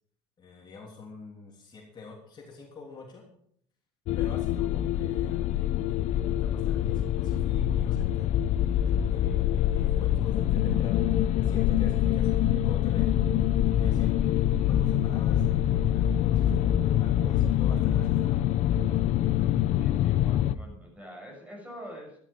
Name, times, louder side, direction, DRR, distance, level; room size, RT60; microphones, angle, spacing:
voice 1, 0.4-3.2 4.1-8.4 8.8-11.0 11.4-13.1 13.7-18.6, left 4 dB, 30° left, -1 dB, 3.2 m, -46 dB
sound 1, 4.1-20.6, left 11 dB, 60° left, 0.8 m, -25 dB
voice 2, 19.8-22.2, equal, 10° right, 1 dB, 6.4 m, -45 dB
13.5 x 13.0 x 5.4 m, 0.66 s
cardioid pair, 125°, 14 cm